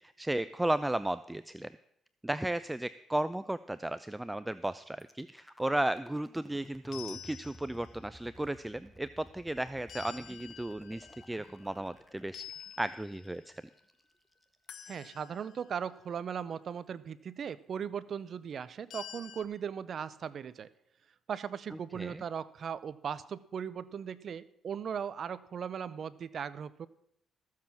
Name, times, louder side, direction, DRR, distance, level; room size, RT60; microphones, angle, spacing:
voice 1, 0.0-1.7 2.2-12.4 12.8-13.6 21.9-22.2, right 1 dB, 10° right, 15 dB, 0.4 m, -34 dB
sound 1, 5.0-15.0, equal, 5° left, 1.2 m, -55 dB
sound 2, 6.9-8.1 9.9-11.9 12.3-13.6 14.7-15.7 18.9-19.4, left 9 dB, 70° left, 0.9 m, -49 dB
voice 2, 14.9-20.7 21.3-26.9, right 7 dB, 55° right, 17 dB, 0.6 m, -38 dB
14.5 x 7.5 x 5.9 m, 0.74 s
cardioid pair, 90°, 0 cm